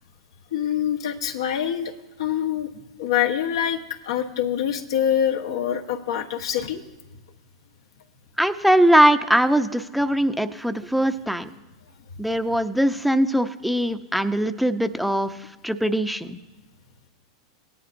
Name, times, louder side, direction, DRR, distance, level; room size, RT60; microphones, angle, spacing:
voice 1, 0.5-1.8 2.2-2.7 3.0-6.8, left 9 dB, 75° left, 4 dB, 1.2 m, -25 dB
voice 2, 8.4-11.5 12.2-15.3 15.6-16.4, equal, ahead, 8 dB, 0.7 m, -21 dB
17.5 x 11.0 x 2.6 m, 1.1 s
hypercardioid pair, 105°, 2 cm